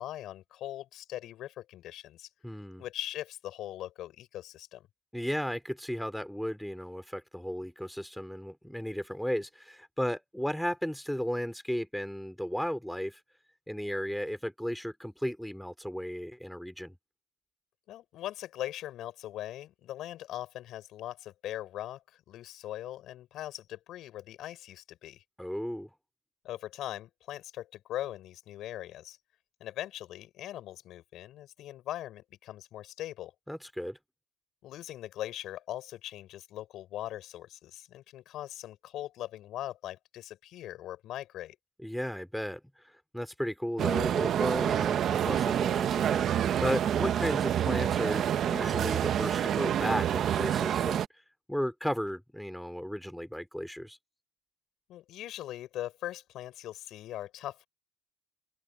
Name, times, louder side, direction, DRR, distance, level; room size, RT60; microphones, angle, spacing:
voice 1, 0.0-2.3 2.8-4.9 17.9-25.2 26.4-29.2 29.6-33.3 34.6-41.6 54.9-57.7, left 13 dB, 55° left, 5.8 m, -40 dB
voice 2, 2.4-2.8 5.1-13.2 13.7-16.9 25.4-25.9 33.5-34.0 41.8-51.0 51.5-54.0, equal, ahead, 2.8 m, -35 dB
sound 1, 43.8-51.1, right 10 dB, 45° right, 0.8 m, -28 dB
open air
cardioid pair, 130°, 0 cm